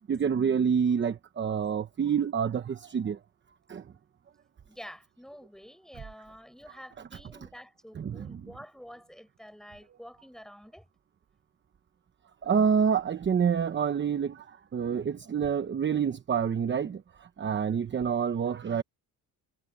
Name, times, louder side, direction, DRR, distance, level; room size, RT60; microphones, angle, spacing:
voice 1, 0.1-3.2 3.7-3.9 8.0-8.5 12.4-18.8, right 7 dB, 30° right, 0.9 m, -28 dB
voice 2, 4.7-10.8, equal, ahead, 5.6 m, -48 dB
cardioid pair, 125°, 41 cm